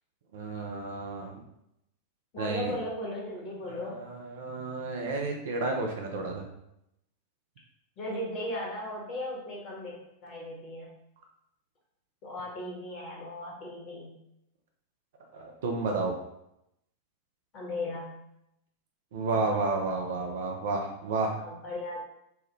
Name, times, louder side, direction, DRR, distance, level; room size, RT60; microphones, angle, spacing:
voice 1, 0.3-1.4 2.4-2.7 3.6-6.4 15.3-16.1 19.1-21.3, right 3 dB, 55° right, 2 dB, 0.5 m, -31 dB
voice 2, 2.3-4.0 8.0-10.9 12.2-14.1 17.5-18.2 19.3-19.6 21.4-22.0, left 1 dB, 35° left, -3 dB, 1.3 m, -37 dB
3.3 x 2.2 x 3.1 m, 0.80 s
figure-of-eight pair, 90°, 0 cm